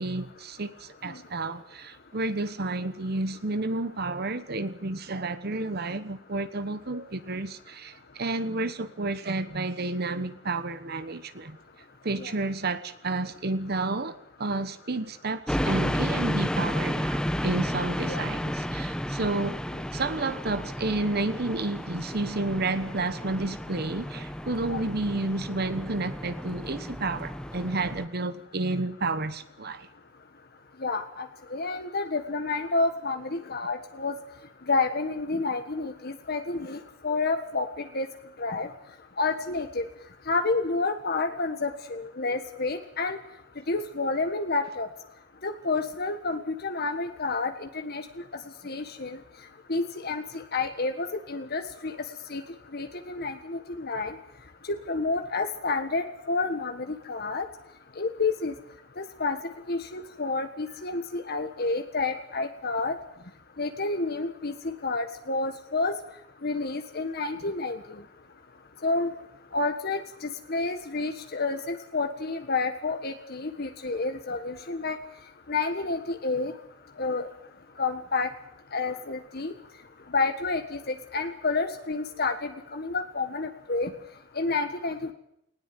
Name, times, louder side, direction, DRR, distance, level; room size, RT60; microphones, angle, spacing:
voice 1, 0.0-11.6 12.0-19.6 19.9-29.9, right 2 dB, 55° right, 1.2 m, -31 dB
sound 1, 15.5-28.1, equal, 5° left, 0.9 m, -32 dB
voice 2, 30.8-31.3 31.5-34.1 34.7-36.8 37.0-37.7 37.9-38.1 38.4-38.7 39.2-39.8 40.3-43.2 43.7-44.9 45.4-48.0 48.6-49.2 49.7-51.9 52.3-52.4 52.7-54.1 54.7-57.5 58.0-58.5 59.0-59.4 59.7-62.9 63.6-65.9 66.4-67.8 68.8-69.1 69.5-75.0 75.5-76.5 77.0-77.3 77.8-78.3 78.7-79.5 80.1-83.9 84.3-85.1, left 3 dB, 55° left, 1.5 m, -29 dB
19.5 x 17.5 x 9.2 m
head